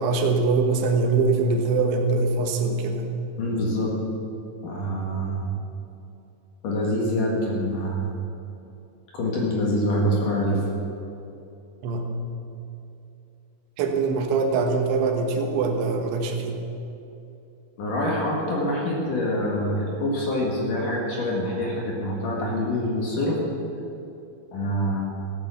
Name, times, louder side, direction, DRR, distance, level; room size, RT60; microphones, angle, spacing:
voice 1, 0.0-3.1 11.8-12.2 13.8-16.6, right 4 dB, 85° right, 3 dB, 3.6 m, -23 dB
voice 2, 3.4-3.9 4.6-5.6 6.6-8.3 9.1-10.6 17.8-23.4 24.5-25.3, equal, 55° left, -2 dB, 2.9 m, -25 dB
15.5 x 8.4 x 7.0 m, 2.8 s
omnidirectional pair, 5.3 m